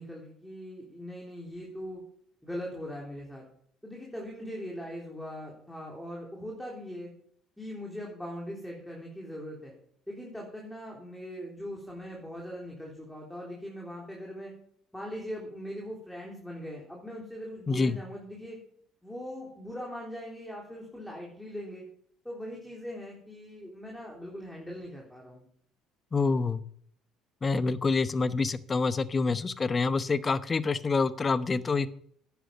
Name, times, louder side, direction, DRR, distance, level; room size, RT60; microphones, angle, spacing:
voice 1, 0.0-2.0 2.4-3.4 3.8-7.1 7.6-9.7 10.1-14.5 14.9-18.6 19.0-21.8 22.2-25.5, equal, 5° left, -2 dB, 3.5 m, -40 dB
voice 2, 26.1-26.6 27.4-31.9, left 4 dB, 30° left, 15 dB, 0.8 m, -27 dB
10.5 x 9.5 x 5.3 m, 0.64 s
hypercardioid pair, 55°, 0 cm